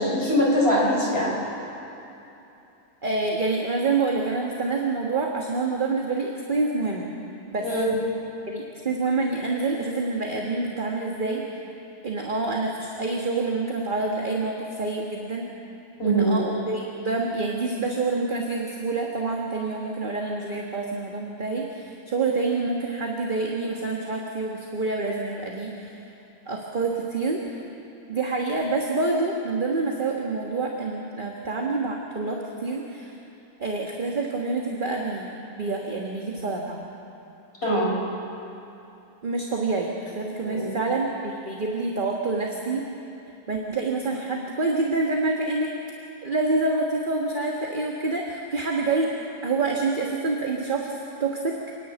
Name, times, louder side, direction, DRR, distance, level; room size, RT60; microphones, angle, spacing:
voice 1, 0.0-1.3 7.6-7.9 16.0-16.4 37.6-37.9 40.4-40.8, equal, 40° left, -4 dB, 5.1 m, -22 dB
voice 2, 3.0-7.1 7.5-7.7 8.5-11.4 12.0-15.5 16.0-25.7 26.5-27.4 28.1-33.1 33.6-35.3 35.6-36.8 39.2-42.8 43.5-45.7 46.2-49.1 49.4-50.9 51.2-51.5, right 3 dB, 35° right, -1 dB, 1.6 m, -27 dB
27.0 x 10.5 x 9.2 m, 2.9 s
omnidirectional pair, 1.6 m